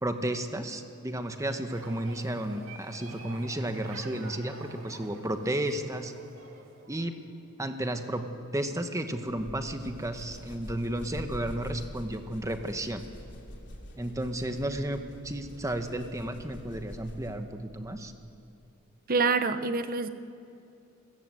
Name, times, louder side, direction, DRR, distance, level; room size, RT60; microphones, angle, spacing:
voice 1, 0.0-6.1 6.9-7.1 7.6-8.2 8.5-13.0 14.0-18.1, right 1 dB, 15° right, 7 dB, 1.2 m, -33 dB
sound 1, 1.7-7.3, right 2 dB, 75° right, 2.8 m, -48 dB
sound 2, 9.3-17.6, equal, 60° left, 3.3 m, -45 dB
voice 2, 19.1-20.1, right 4 dB, 45° right, 11 dB, 1.0 m, -26 dB
28.0 x 15.5 x 7.8 m, 2.7 s
head